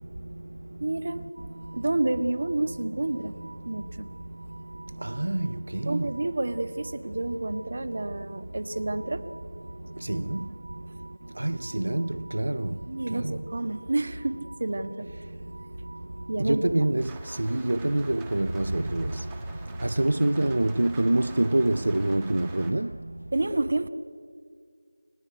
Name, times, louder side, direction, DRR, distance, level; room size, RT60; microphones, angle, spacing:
voice 1, 0.8-1.2 1.7-3.4 3.6-4.1 5.8-9.2 10.1-10.2 12.9-15.1 16.3-16.7 23.3-23.9, right 2 dB, 45° right, 1.5 m, -29 dB
sound 1, 1.3-17.6, right 2 dB, 85° right, 4.5 m, -53 dB
voice 2, 5.0-6.1 10.0-10.4 11.4-12.7 13.1-13.3 16.5-19.1 19.8-22.9, right 1 dB, 70° right, 0.6 m, -26 dB
Rain, 17.0-22.7, right 3 dB, 5° right, 1.5 m, -47 dB
30.0 x 16.5 x 9.3 m
figure-of-eight pair, 180°, 0 cm